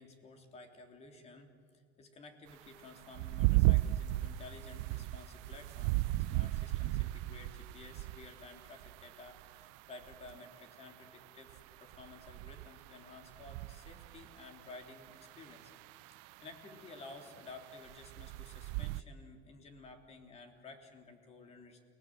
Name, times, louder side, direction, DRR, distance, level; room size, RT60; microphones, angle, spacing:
voice 1, 0.0-15.7 16.4-21.8, left 3 dB, 35° left, 5 dB, 3.4 m, -53 dB
sound 1, 3.0-9.8 10.0-10.4 11.5-14.5 14.9-19.0, right 18 dB, 75° right, 0.5 m, -35 dB
29.5 x 19.5 x 7.7 m, 2.2 s
cardioid pair, 135°, 20 cm